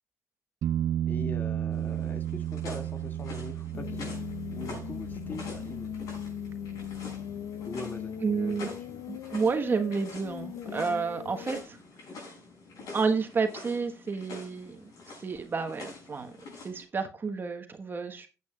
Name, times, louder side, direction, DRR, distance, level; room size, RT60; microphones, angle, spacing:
sound 1, 0.6-8.2 11.3-11.4, right 11 dB, 70° right, 0.5 m, -34 dB
voice 1, 1.1-4.1 4.5-5.9 7.6-9.1, left 2 dB, 30° left, 5 dB, 2.2 m, -42 dB
sound 2, 1.7-16.8, left 3 dB, 70° left, 6.6 m, -46 dB
sound 3, 3.7-11.6, left 11 dB, 90° left, 0.6 m, -39 dB
voice 2, 8.2-8.7 9.1-11.8 12.9-14.9 15.2-16.3 16.6-18.3, right 5 dB, 35° right, 7 dB, 1.3 m, -30 dB
15.5 x 8.2 x 2.4 m, 0.29 s
cardioid pair, 95°, 6 cm